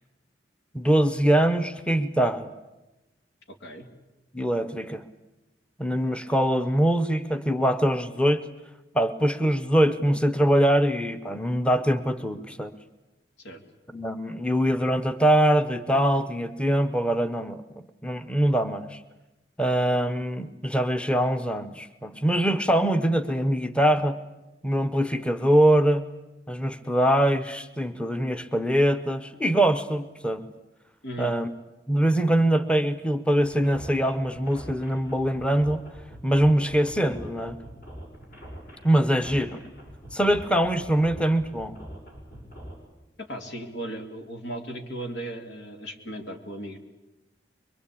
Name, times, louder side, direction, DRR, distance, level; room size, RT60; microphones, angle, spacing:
voice 1, 0.7-2.5 4.3-5.0 5.8-8.4 8.9-12.7 13.9-19.0 19.6-24.2 24.6-26.0 26.5-30.5 31.2-31.5 31.9-35.8 36.2-37.6 38.8-39.6 40.1-41.8, right 1 dB, 5° left, 12 dB, 0.8 m, -23 dB
voice 2, 3.5-3.9 13.4-13.6 31.0-31.3 43.2-46.8, right 1 dB, 85° left, 5 dB, 2.8 m, -36 dB
sound 1, 33.4-42.7, equal, 55° left, 5.8 m, -43 dB
23.5 x 23.0 x 8.5 m, 1.0 s
head